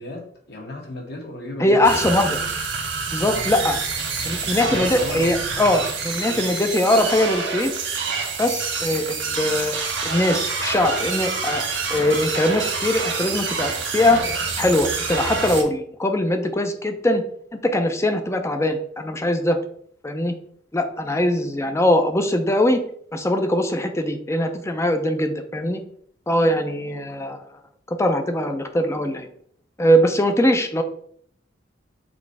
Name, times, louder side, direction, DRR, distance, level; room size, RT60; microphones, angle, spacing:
voice 1, 0.0-2.4 3.2-3.5 4.6-5.3 6.2-6.5, left 2 dB, 60° left, -1 dB, 1.9 m, -35 dB
voice 2, 1.6-2.4 3.1-3.8 4.2-7.7 8.4-9.7 10.0-11.6 11.9-14.2 14.6-17.2 17.6-19.6 20.0-20.3 20.7-22.8 23.1-25.8 26.3-27.4 27.9-29.3 29.8-30.8, left 1 dB, 15° left, 6 dB, 0.6 m, -21 dB
sound 1, 1.8-15.6, right 4 dB, 80° right, 1.6 m, -27 dB
6.2 x 3.2 x 4.7 m, 0.62 s
head